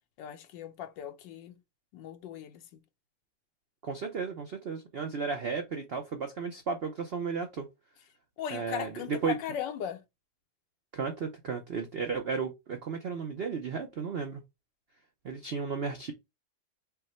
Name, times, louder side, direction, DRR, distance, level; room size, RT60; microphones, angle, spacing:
voice 1, 0.2-1.5 1.9-2.8 8.4-10.0, left 9 dB, 80° left, 1.3 m, -38 dB
voice 2, 3.8-7.7 8.5-9.4 10.9-14.4 15.2-16.1, right 5 dB, 65° right, 0.6 m, -34 dB
5.6 x 2.2 x 4.2 m
omnidirectional pair, 2.0 m